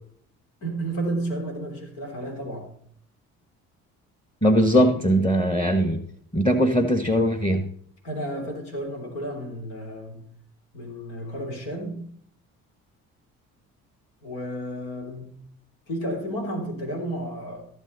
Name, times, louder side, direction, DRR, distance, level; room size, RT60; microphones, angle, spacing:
voice 1, 0.6-2.8 8.0-10.3 10.7-12.1 14.2-15.4 15.9-17.7, right 1 dB, 80° left, 3.8 m, -32 dB
voice 2, 4.4-6.0 6.3-7.7, equal, 15° left, 1.4 m, -20 dB
15.5 x 7.2 x 4.1 m
hypercardioid pair, 55°, 40 cm